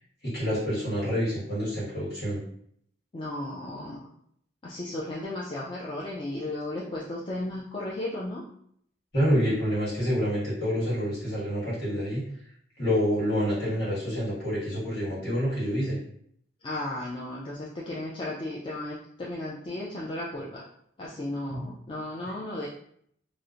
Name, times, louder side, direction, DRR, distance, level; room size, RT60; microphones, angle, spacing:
voice 1, 0.2-2.4 9.1-12.2 12.8-16.0 21.5-21.7 22.2-22.3, equal, 55° left, -8 dB, 1.5 m, -27 dB
voice 2, 3.1-4.1 4.6-8.4 16.6-20.6 21.0-22.7, left 1 dB, 25° left, -6 dB, 0.3 m, -35 dB
2.7 x 2.0 x 2.4 m, 0.67 s
head